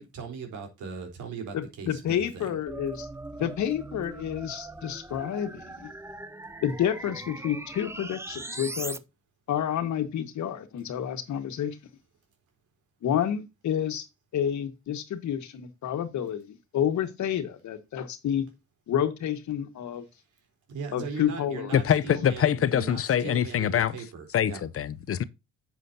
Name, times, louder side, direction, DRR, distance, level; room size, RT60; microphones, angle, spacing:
voice 1, 0.0-2.5 20.7-24.6, right 5 dB, 80° right, 4.0 m, -39 dB
voice 2, 1.5-3.1 3.4-5.9 6.6-9.0 9.5-11.8 13.0-14.1 14.3-18.4 18.9-20.1 20.9-21.7, left 9 dB, 70° left, 1.6 m, -29 dB
sound 1, 2.7-9.0, right 2 dB, 10° right, 0.6 m, -40 dB
voice 3, 21.7-23.9 24.3-25.2, left 9 dB, 50° left, 0.7 m, -24 dB
10.5 x 7.4 x 2.8 m
cardioid pair, 90°, 30 cm